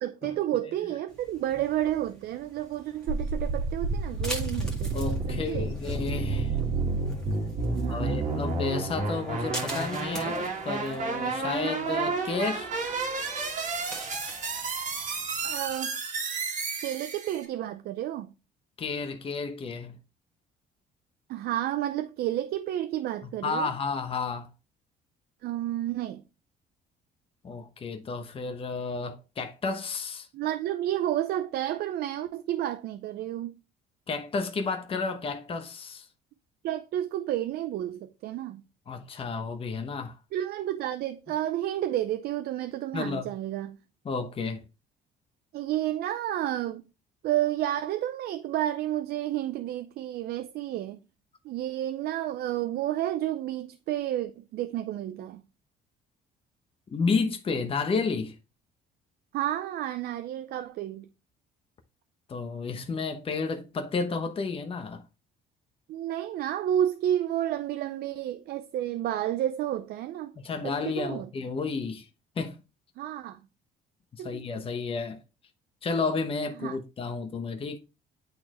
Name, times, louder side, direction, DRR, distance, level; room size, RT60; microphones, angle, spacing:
voice 1, 0.0-4.9 5.3-5.7 7.6-8.2 15.4-16.0 16.8-18.3 21.3-23.7 25.4-26.2 30.3-33.5 36.6-38.6 40.3-43.8 45.5-46.8 47.2-51.0 51.4-55.4 59.3-61.1 65.9-70.3 70.6-71.3 73.0-73.4 74.2-74.4 76.6-76.8, right 12 dB, 70° right, 0.5 m, -31 dB
sound 1, 1.1-15.8, equal, 5° left, 1.8 m, -45 dB
sound 2, 3.1-17.5, right 3 dB, 45° right, 1.7 m, -31 dB
voice 2, 4.9-6.6 7.9-12.7 18.8-20.0 23.2-24.5 27.4-30.3 34.1-36.1 38.9-40.2 42.9-43.3 44.0-44.7 56.9-58.4 62.3-65.0 70.4-72.1 72.3-72.6 74.1-75.2 75.8-77.8, left 4 dB, 35° left, 1.0 m, -31 dB
8.6 x 4.2 x 3.0 m
cardioid pair, 110°, 17 cm